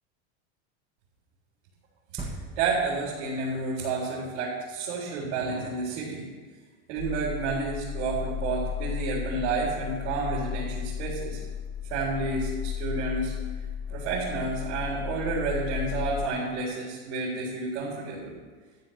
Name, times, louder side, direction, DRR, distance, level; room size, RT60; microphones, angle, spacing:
sound 1, 2.2-4.0 4.3-4.4, right 3 dB, 20° right, 1.6 m, -41 dB
voice 1, 2.6-6.2 6.9-11.4 11.9-13.3 13.9-18.3, right 3 dB, 70° right, -8 dB, 4.2 m, -30 dB
sound 2, 7.0-16.3, left 9 dB, 50° left, 2.1 m, -34 dB
13.0 x 9.1 x 6.6 m, 1.4 s
supercardioid pair, 155°, 35 cm